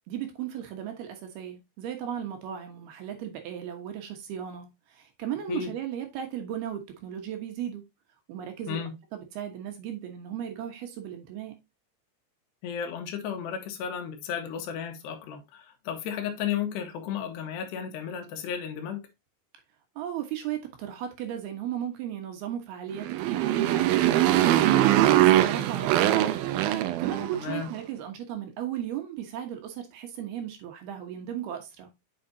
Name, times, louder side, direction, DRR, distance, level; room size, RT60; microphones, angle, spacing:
voice 1, 0.1-7.8 8.3-11.5 20.0-31.9, right 10 dB, 70° right, 3.0 m, -36 dB
voice 2, 12.6-19.0 27.3-27.7, left 8 dB, 75° left, 3.2 m, -33 dB
Motorcycle, 22.9-27.6, right 13 dB, 85° right, 2.1 m, -22 dB
8.4 x 5.6 x 2.7 m
omnidirectional pair, 5.0 m